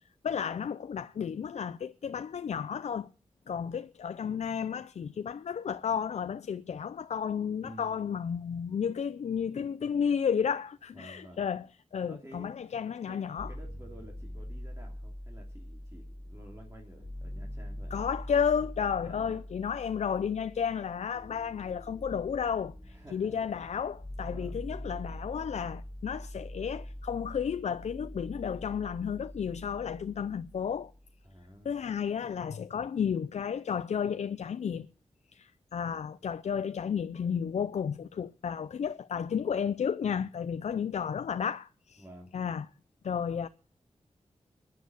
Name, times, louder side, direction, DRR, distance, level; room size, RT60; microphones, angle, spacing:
voice 1, 0.2-3.1 3.5-11.7 11.9-13.5 17.9-30.9 31.6-34.9 35.3-42.0 42.3-42.6 43.0-43.5, left 7 dB, 80° left, 0.5 m, -32 dB
voice 2, 7.6-8.2 10.9-11.4 12.0-12.5 13.1-13.2 13.5-17.9 19.0-19.4 19.8-20.0 22.8-23.5 24.3-24.5 31.2-31.8 42.0-42.3, right 1 dB, 25° right, 3.1 m, -51 dB
sound 1, 13.4-31.3, left 1 dB, 25° left, 2.0 m, -44 dB
10.5 x 9.3 x 8.0 m
wide cardioid pair, 70°, 11 cm